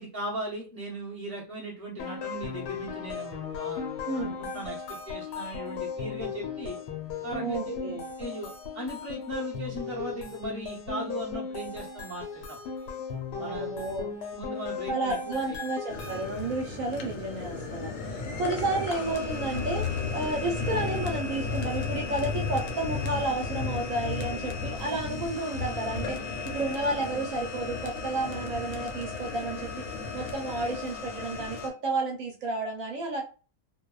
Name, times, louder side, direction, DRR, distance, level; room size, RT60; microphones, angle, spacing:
voice 1, 0.0-6.8 7.2-7.8 8.2-12.6 13.4-13.7 14.3-15.6 18.3-18.4, right 1 dB, 25° left, -5 dB, 0.3 m, -38 dB
sound 1, 2.0-16.7, left 6 dB, 85° left, 1.2 m, -37 dB
voice 2, 4.1-4.4 7.4-8.0 13.3-14.1 14.9-29.7 30.1-33.2, right 2 dB, 65° right, 1 dB, 0.9 m, -32 dB
sound 2, 15.9-31.7, left 4 dB, 65° left, 0.8 m, -34 dB
2.6 x 2.1 x 2.3 m, 0.35 s
omnidirectional pair, 1.7 m